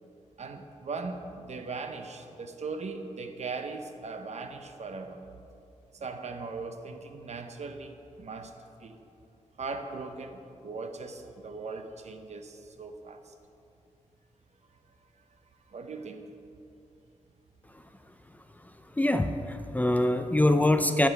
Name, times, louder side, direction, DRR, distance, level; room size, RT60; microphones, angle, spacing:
voice 1, 0.4-5.2 5.9-8.5 8.8-9.0 9.6-13.3 15.7-16.2, right 4 dB, 60° right, 7 dB, 0.7 m, -39 dB
voice 2, 19.0-21.1, left 1 dB, 10° left, 8 dB, 0.4 m, -24 dB
11.0 x 8.9 x 4.6 m, 2.7 s
wide cardioid pair, 135°, 13 cm